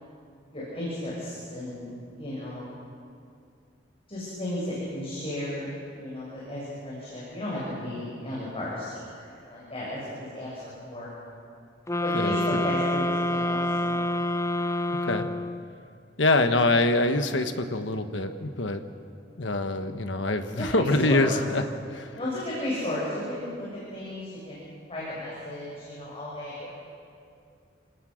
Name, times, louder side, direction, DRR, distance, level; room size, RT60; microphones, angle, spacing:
voice 1, 0.5-2.7 4.1-11.1 12.0-14.0 20.6-21.3 22.1-26.7, left 1 dB, 30° left, -7 dB, 6.7 m, -34 dB
sound 1, 11.9-15.8, left 1 dB, 15° left, 0.5 m, -27 dB
voice 2, 16.2-18.8 19.4-21.6 21.9-22.2, left 2 dB, 80° left, 7 dB, 1.3 m, -25 dB
28.5 x 18.5 x 6.4 m, 2.4 s
head